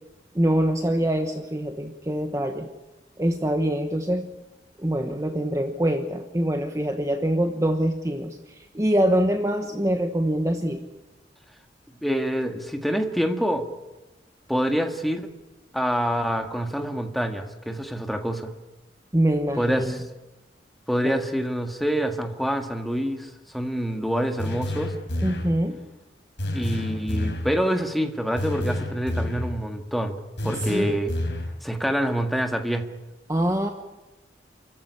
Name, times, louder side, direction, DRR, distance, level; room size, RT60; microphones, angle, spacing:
voice 1, 0.3-2.7 3.2-4.3 4.8-10.8 19.1-20.0 21.0-21.2 25.2-25.8 30.7-30.9 33.3-33.7, right 1 dB, 15° right, 6 dB, 1.2 m, -24 dB
voice 2, 12.0-13.7 14.5-15.3 15.7-18.5 19.6-20.0 20.9-24.9 26.5-30.2 30.4-31.1 31.6-32.9, equal, ahead, 5 dB, 1.8 m, -26 dB
sound 1, 24.4-25.6 26.4-27.6 28.4-29.6 30.4-31.6, left 1 dB, 75° left, 4.7 m, -29 dB
29.0 x 14.5 x 10.0 m, 1.0 s
head